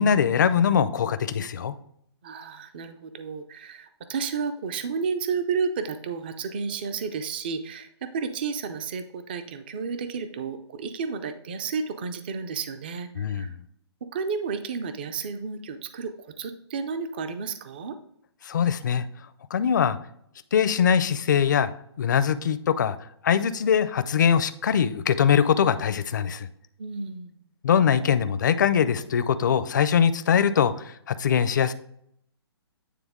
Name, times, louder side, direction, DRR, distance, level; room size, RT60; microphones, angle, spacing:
voice 1, 0.0-1.7 13.2-13.5 18.4-19.1 19.5-20.0 20.5-21.7 22.0-23.0 23.2-26.5 27.6-31.7, left 7 dB, 45° left, 13 dB, 0.5 m, -22 dB
voice 2, 2.2-13.5 14.1-16.1 16.4-18.0 26.8-27.3, right 5 dB, 20° right, 10 dB, 0.3 m, -32 dB
9.3 x 3.4 x 3.6 m, 0.71 s
hypercardioid pair, 165°, 14 cm